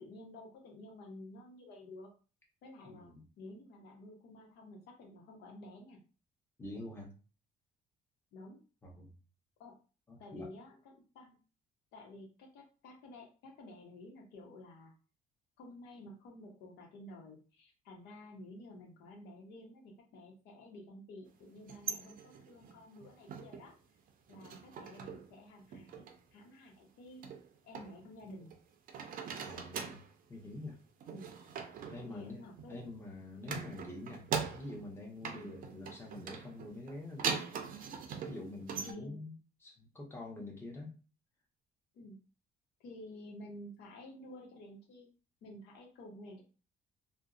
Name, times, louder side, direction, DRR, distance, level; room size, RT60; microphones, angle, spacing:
voice 1, 0.0-2.1 2.6-6.0 8.3-8.6 9.6-9.8 10.2-11.4 11.9-14.9 15.6-23.7 24.3-27.3 27.6-28.5 31.1-31.4 32.0-33.0 35.3-35.5 38.8-39.2 40.4-40.6 41.9-42.2 42.8-45.1 45.4-46.4, left 1 dB, 80° left, 0 dB, 0.8 m, -52 dB
voice 2, 2.8-3.2 6.6-7.1 8.8-9.1 10.1-10.5 29.4-30.0 30.3-30.8 31.9-34.3 34.5-37.4 38.3-39.3 39.6-40.9, left 2 dB, 15° left, -1 dB, 0.8 m, -46 dB
sound 1, 21.6-23.8 24.1-25.3 25.6-26.2 27.2-28.6 28.9-30.1 31.0-33.0 33.4-34.9 35.2-38.9, right 6 dB, 55° right, 0.5 m, -41 dB
2.5 x 2.0 x 2.4 m, 0.35 s
cardioid pair, 110°, 17 cm